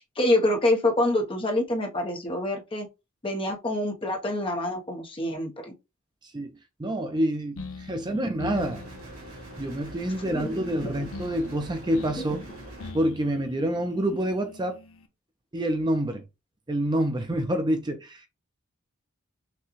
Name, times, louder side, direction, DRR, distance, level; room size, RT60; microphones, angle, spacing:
voice 1, 0.0-2.9 3.2-5.7 10.2-11.0, left 1 dB, 25° left, 0.8 m, -26 dB
voice 2, 6.8-8.8 9.6-12.4 12.9-14.8 15.5-16.2 16.7-18.3, right 1 dB, 20° right, 0.5 m, -27 dB
sound 1, 7.6-15.1, left 3 dB, 70° left, 0.8 m, -44 dB
sound 2, 8.5-12.9, right 1 dB, 90° right, 2.9 m, -43 dB
6.0 x 2.2 x 3.0 m
head